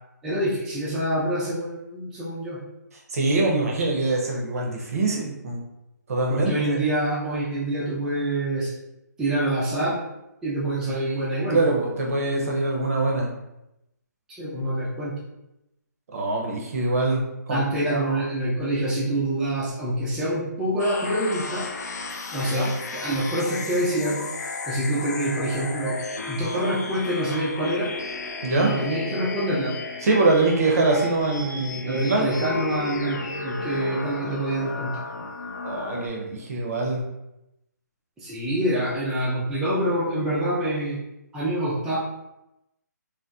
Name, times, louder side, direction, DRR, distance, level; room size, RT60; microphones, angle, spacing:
voice 1, 0.2-2.6 6.3-8.7 9.2-10.0 10.4-11.8 14.3-15.1 17.5-21.7 22.3-24.2 24.7-26.0 26.3-27.9 28.5-29.7 31.8-35.0 38.2-41.0 41.3-42.0, right 1 dB, 5° right, -9 dB, 0.4 m, -26 dB
voice 2, 3.1-5.6 6.1-6.9 10.9-13.3 16.1-17.6 17.9-18.2 22.6-22.7 28.4-28.7 30.0-32.5 35.6-37.1, right 2 dB, 50° right, -1 dB, 0.6 m, -24 dB
sound 1, 20.8-36.1, left 3 dB, 65° left, 0.4 m, -34 dB
2.8 x 2.1 x 2.2 m, 0.89 s
figure-of-eight pair, 145°, 10 cm